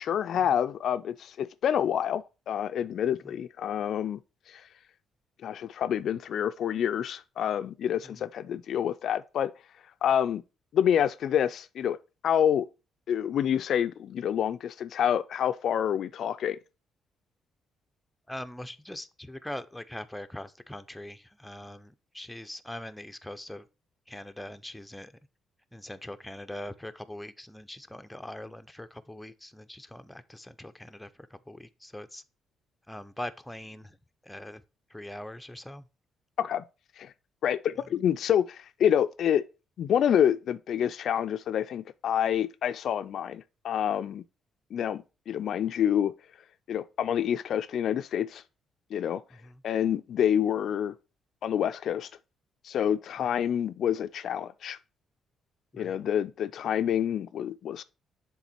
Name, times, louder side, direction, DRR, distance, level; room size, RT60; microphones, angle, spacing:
voice 1, 0.0-4.2 4.5-4.6 5.4-9.5 10.0-10.4 10.7-12.0 12.2-12.7 13.1-16.6 36.4-36.6 37.0-37.1 37.4-39.4 39.8-44.2 44.7-46.1 46.7-48.4 48.9-49.2 49.6-51.0 51.4-52.1 52.6-54.8 55.7-57.8, left 9 dB, 70° left, 0.3 m, -27 dB
voice 2, 18.3-23.7 24.1-25.1 25.7-32.2 32.9-34.0 34.2-34.6 34.9-35.9 49.3-49.6 53.3-53.4 55.7-56.0, left 1 dB, 5° left, 0.5 m, -42 dB
7.1 x 3.7 x 4.2 m
cardioid pair, 90°, 0 cm